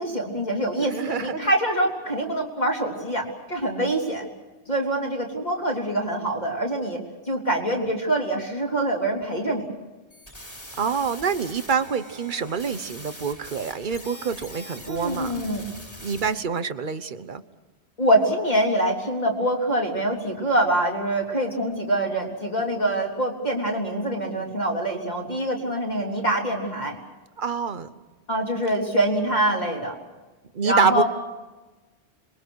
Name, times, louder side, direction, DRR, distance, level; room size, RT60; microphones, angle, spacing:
voice 1, 0.0-4.3 4.7-7.0 7.3-9.7 14.9-15.7 18.0-27.0 28.3-30.0 30.6-31.0, right 1 dB, 40° left, 0 dB, 3.8 m, -25 dB
voice 2, 0.9-1.5 10.8-15.3 16.0-17.4 27.4-27.9 30.5-31.0, right 6 dB, 50° right, 12 dB, 1.1 m, -26 dB
sound 1, 10.1-16.3, equal, 15° left, 3.2 m, -42 dB
27.0 x 22.5 x 6.4 m, 1.2 s
omnidirectional pair, 1.1 m